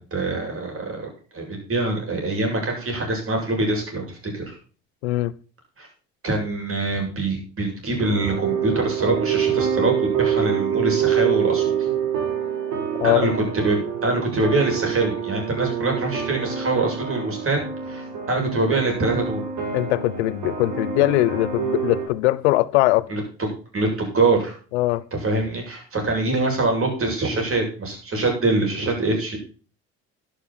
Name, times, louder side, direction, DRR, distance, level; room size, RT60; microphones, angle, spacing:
voice 1, 0.0-4.5 5.8-5.9 6.2-11.9 13.0-19.4 23.1-23.5 23.7-24.6 25.1-29.4, right 2 dB, 40° right, 7.6 m, -24 dB
voice 2, 5.0-5.3 13.0-13.4 19.7-23.1 24.7-25.0, left 18 dB, 90° left, 0.8 m, -21 dB
sound 1, 8.0-22.1, right 8 dB, 60° right, 4.7 m, -26 dB
12.0 x 11.5 x 4.3 m
supercardioid pair, 70°, 33 cm